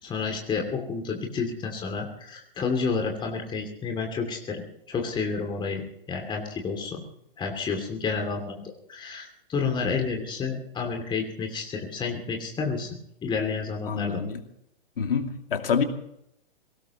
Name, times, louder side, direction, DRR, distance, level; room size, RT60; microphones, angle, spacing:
voice 1, 0.0-7.0 7.4-8.6 8.9-12.9 13.2-14.2, left 5 dB, 15° left, 2 dB, 2.7 m, -30 dB
voice 2, 13.9-14.4 15.0-15.8, left 6 dB, 70° left, 5 dB, 2.6 m, -26 dB
22.5 x 18.5 x 3.1 m, 0.76 s
figure-of-eight pair, 115°, 29 cm